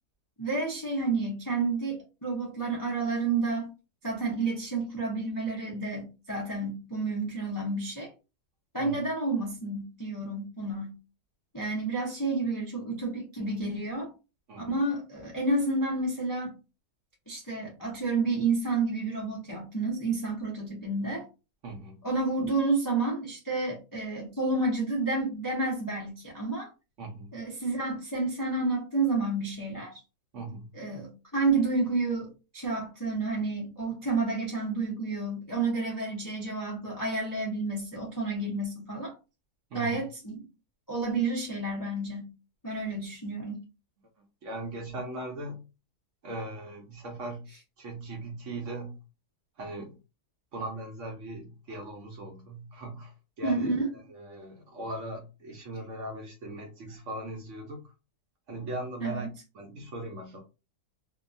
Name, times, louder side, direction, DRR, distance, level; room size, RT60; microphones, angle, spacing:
voice 1, 0.4-3.7 4.0-8.1 8.7-11.0 11.5-14.1 14.6-16.5 17.3-21.3 22.0-26.7 27.3-30.0 30.7-39.1 39.7-40.4 40.9-42.3 42.6-43.6 53.4-53.9 59.0-59.3, right 3 dB, 30° left, 0.3 m, -30 dB
voice 2, 21.6-22.0 27.0-27.3 30.3-30.7 39.7-40.0 44.4-45.6 46.2-47.5 47.8-49.0 49.6-50.0 50.5-57.9 58.5-59.3 59.5-60.4, right 2 dB, 60° right, 0.8 m, -39 dB
2.7 x 2.3 x 2.5 m
omnidirectional pair, 1.7 m